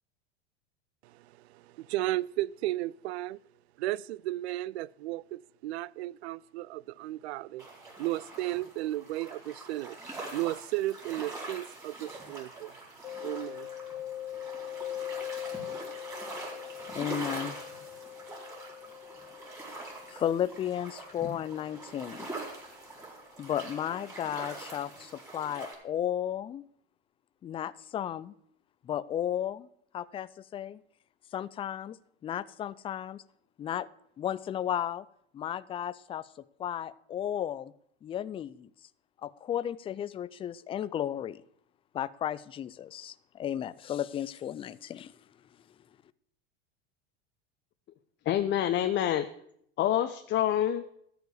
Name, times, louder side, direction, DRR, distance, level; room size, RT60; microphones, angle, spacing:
voice 1, 1.5-3.4 3.8-7.7 8.0-10.0 10.3-12.7 13.2-13.7, right 16 dB, 75° right, 0.5 m, -34 dB
sound 1, 7.6-25.7, right 2 dB, 10° right, 4.4 m, -44 dB
Mallet percussion, 13.0-22.6, left 11 dB, 80° left, 0.7 m, -42 dB
voice 2, 16.9-17.6 20.1-22.3 23.4-26.6 27.4-28.3 28.8-29.7 29.9-30.8 31.3-33.2 33.6-33.9 34.2-35.0 35.3-36.3 36.6-37.7 38.0-38.7 39.2-41.4 41.9-45.1, left 10 dB, 15° left, 0.3 m, -34 dB
voice 3, 48.3-49.3 49.8-50.8, left 11 dB, 35° left, 0.7 m, -27 dB
13.0 x 4.9 x 7.9 m
hypercardioid pair, 105°, 32 cm